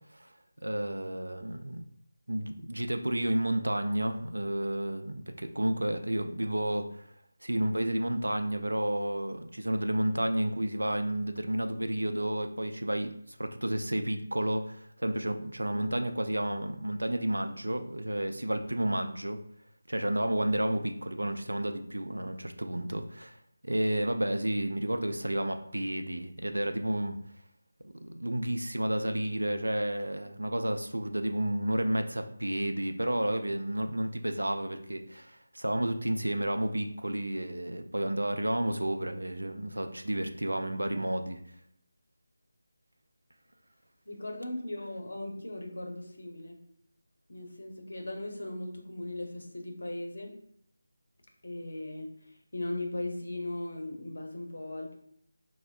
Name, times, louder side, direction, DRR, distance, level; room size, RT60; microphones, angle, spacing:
voice 1, 0.6-1.9 2.3-7.0 7.4-19.4 19.9-23.4 23.6-27.2 27.8-41.4, right 1 dB, 75° right, 6 dB, 0.4 m, -31 dB
voice 2, 44.1-46.6 47.3-50.4 51.4-55.0, left 1 dB, 60° left, 2 dB, 0.7 m, -38 dB
4.3 x 2.0 x 2.3 m, 0.68 s
figure-of-eight pair, 160°, 0 cm